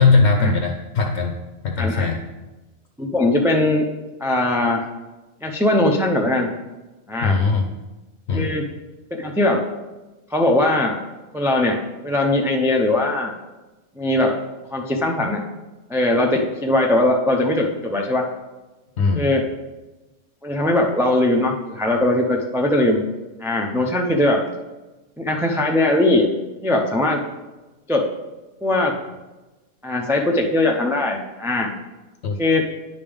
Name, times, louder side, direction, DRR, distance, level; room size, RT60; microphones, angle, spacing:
voice 1, 0.0-1.3 1.6-2.2 7.2-7.7 8.3-8.5 19.0-19.3 32.2-32.4, left 4 dB, 70° left, 4 dB, 0.9 m, -19 dB
voice 2, 3.0-3.9 4.2-4.8 5.4-6.5 7.1-7.4 8.3-8.6 9.1-9.6 10.3-11.0 11.3-11.8 12.0-13.3 14.0-14.4 14.7-15.4 15.9-18.3 19.1-19.5 20.4-23.0 23.4-24.4 25.2-26.3 26.6-27.2 27.9-28.1 28.6-29.0 29.8-31.7 32.4-32.7, left 1 dB, 5° right, 0 dB, 0.4 m, -20 dB
10.0 x 5.3 x 3.5 m, 1.1 s
omnidirectional pair, 1.2 m